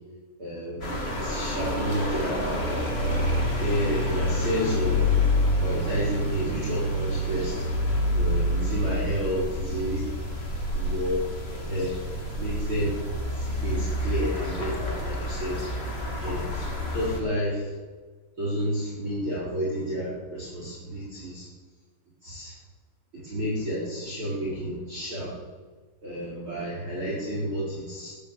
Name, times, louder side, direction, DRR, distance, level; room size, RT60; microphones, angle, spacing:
voice 1, 0.4-2.6 3.6-5.1 5.6-7.6 8.1-10.1 10.7-11.2 11.5-12.0 12.4-12.9 13.3-15.6 16.2-16.5 16.8-17.7 18.4-21.5 22.2-22.5 23.1-25.3 26.0-28.1, equal, 30° right, -6 dB, 4.4 m, -30 dB
sound 1, 0.8-17.2, left 1 dB, 50° left, 0.7 m, -28 dB
13.0 x 11.0 x 7.2 m, 1.4 s
omnidirectional pair, 5.3 m